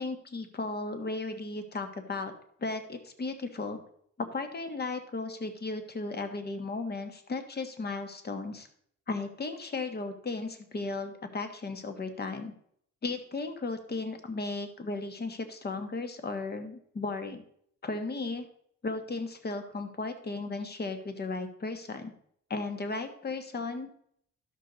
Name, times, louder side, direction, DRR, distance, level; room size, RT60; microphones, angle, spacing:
voice 1, 0.0-2.3 2.6-3.8 4.2-8.7 9.1-12.5 13.0-17.4 17.8-18.5 18.8-22.1 22.5-23.9, left 3 dB, 35° left, 8 dB, 1.4 m, -35 dB
12.0 x 6.6 x 4.0 m, 0.66 s
cardioid pair, 90°, 30 cm